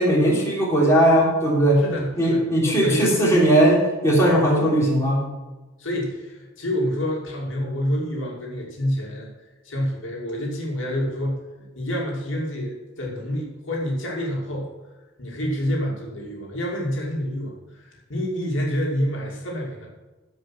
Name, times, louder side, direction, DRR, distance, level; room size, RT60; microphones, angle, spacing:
voice 1, 0.0-1.8 2.2-5.2, right 1 dB, 15° left, -5 dB, 3.4 m, -18 dB
voice 2, 1.8-2.4 2.7-3.1 5.8-9.3 9.6-11.4 11.7-14.7 15.2-19.9, equal, 70° left, -2 dB, 2.7 m, -28 dB
15.0 x 5.1 x 6.1 m, 1.2 s
head